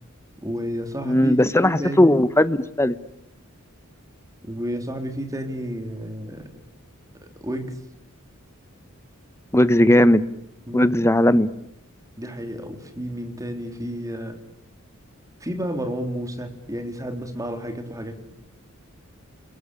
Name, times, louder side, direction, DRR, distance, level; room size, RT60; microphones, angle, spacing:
voice 1, 0.4-2.2 4.4-6.4 7.4-7.8 10.7-11.0 12.2-14.4 15.4-18.1, equal, 15° right, 5 dB, 3.7 m, -31 dB
voice 2, 1.0-3.0 9.5-10.2 10.7-11.5, left 1 dB, 15° left, 14 dB, 1.0 m, -17 dB
29.0 x 22.0 x 8.5 m, 0.79 s
head